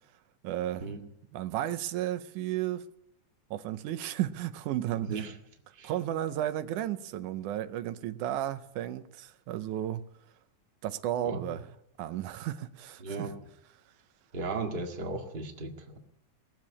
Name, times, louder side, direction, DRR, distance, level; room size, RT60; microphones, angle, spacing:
voice 1, 0.4-0.9 1.3-2.9 3.5-5.2 5.8-10.1 10.8-11.7 12.0-13.3, right 12 dB, 90° right, 2.3 m, -33 dB
voice 2, 5.0-5.3 5.7-5.9 11.2-11.6 13.0-13.3 14.3-16.0, right 3 dB, 25° right, 1.4 m, -36 dB
19.5 x 7.6 x 9.6 m
omnidirectional pair, 3.5 m